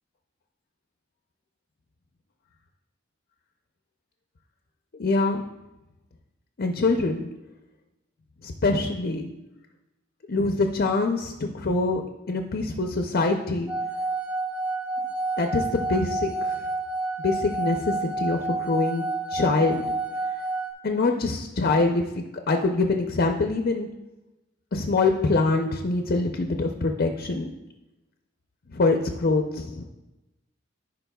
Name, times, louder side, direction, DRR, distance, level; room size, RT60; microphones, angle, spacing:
voice 1, 5.0-5.4 6.6-7.3 8.4-9.3 10.3-12.0 12.3-13.7 15.4-16.6 17.2-19.0 19.3-19.8 20.8-22.0 22.5-23.9 24.7-27.5 28.7-29.8, left 3 dB, 50° left, 4 dB, 0.6 m, -24 dB
sound 1, 13.7-20.7, right 2 dB, 20° right, 1.5 m, -29 dB
14.0 x 5.2 x 2.3 m, 1.0 s
head